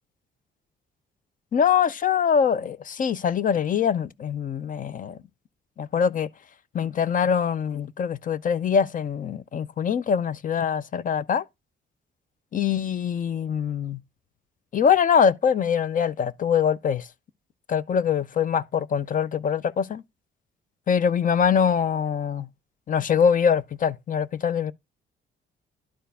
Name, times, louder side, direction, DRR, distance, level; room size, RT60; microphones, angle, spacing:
voice 1, 1.5-5.2 5.8-6.3 6.7-11.4 12.5-14.0 14.7-17.1 17.7-20.0 20.9-22.5 22.9-24.7, left 7 dB, 45° left, 0.5 m, -23 dB
11.5 x 4.5 x 3.4 m
cardioid pair, 90°, 20 cm